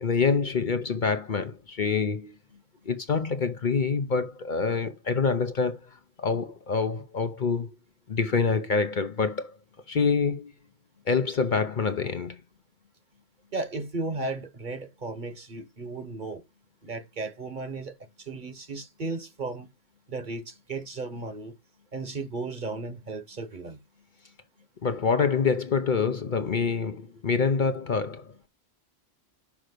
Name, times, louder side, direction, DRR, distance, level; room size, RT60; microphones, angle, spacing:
voice 1, 0.0-2.3 2.9-7.8 8.1-9.6 9.9-10.5 11.1-12.4 24.8-28.5, left 5 dB, 50° left, 0.8 m, -26 dB
voice 2, 13.5-16.4 16.8-19.7 20.1-21.5 21.9-23.8, right 3 dB, 45° right, 1.4 m, -35 dB
6.1 x 5.0 x 6.6 m
omnidirectional pair, 1.1 m